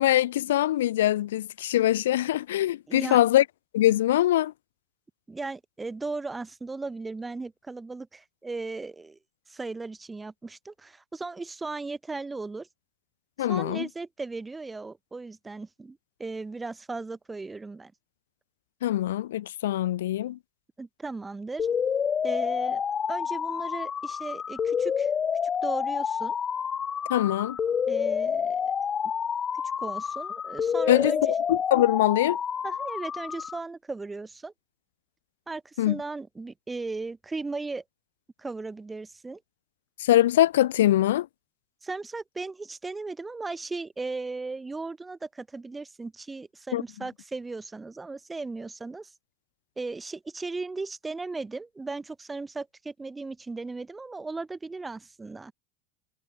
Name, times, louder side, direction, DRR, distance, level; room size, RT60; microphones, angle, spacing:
voice 1, 0.0-3.4 3.7-4.5 13.4-13.9 18.8-20.4 27.1-27.6 30.9-32.4 35.8-36.0 40.0-41.3 46.7-46.8, left 13 dB, 85° left, 1.4 m, -23 dB
voice 2, 2.9-3.2 5.3-9.2 9.5-12.7 13.5-17.9 20.8-21.7 22.2-22.8 23.1-25.1 25.6-26.4 27.9-28.7 29.8-31.3 32.6-34.5 35.5-37.8 38.4-39.4 41.8-49.1 49.8-55.5, right 3 dB, 15° right, 4.8 m, -36 dB
sound 1, 21.6-33.6, left 7 dB, 30° left, 0.7 m, -28 dB
hypercardioid pair, 105°, 0 cm